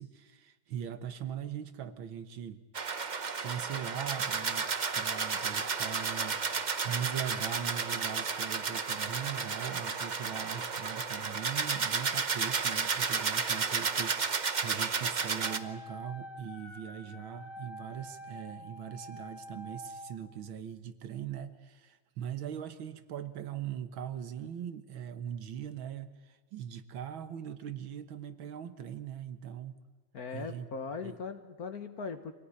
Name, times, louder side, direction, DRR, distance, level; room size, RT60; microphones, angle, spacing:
voice 1, 0.0-2.6 3.4-29.7 30.3-30.7 31.0-31.2, right 9 dB, 75° right, 11 dB, 1.9 m, -40 dB
sound 1, 2.7-15.6, right 5 dB, 50° right, 0.5 m, -32 dB
Wind instrument woodwind instrument, 15.4-20.2, equal, 25° right, 2.2 m, -47 dB
voice 2, 30.1-32.3, left 5 dB, 50° left, 9 dB, 1.6 m, -39 dB
25.5 x 17.0 x 9.8 m, 1.2 s
omnidirectional pair, 2.2 m